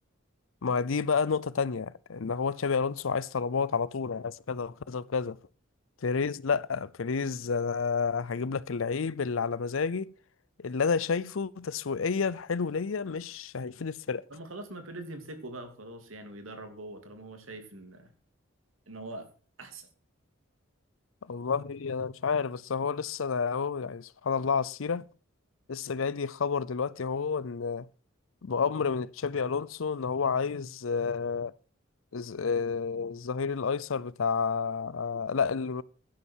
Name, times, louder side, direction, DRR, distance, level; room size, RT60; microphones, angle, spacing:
voice 1, 0.6-5.4 6.0-10.1 10.6-14.2 21.3-25.0 25.7-27.9 28.4-31.5 32.1-35.8, left 5 dB, 80° left, 0.6 m, -30 dB
voice 2, 14.3-18.1 18.9-19.3 19.6-19.9, right 2 dB, 90° right, 2.7 m, -43 dB
11.5 x 11.0 x 4.6 m
head